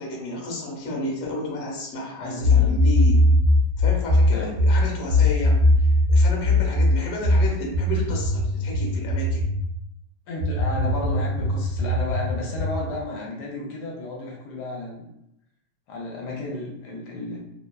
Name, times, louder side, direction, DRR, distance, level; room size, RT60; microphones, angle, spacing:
voice 1, 0.0-3.2 3.8-5.6 6.1-9.4, left 1 dB, 60° left, -1 dB, 1.0 m, -31 dB
voice 2, 2.2-2.8 4.3-4.9 10.3-15.0 15.9-17.4, left 2 dB, 80° left, -2 dB, 1.1 m, -33 dB
sound 1, 2.4-9.7 10.4-12.9, left 1 dB, 60° right, 1.1 m, -20 dB
2.9 x 2.2 x 2.2 m, 0.82 s
omnidirectional pair, 1.8 m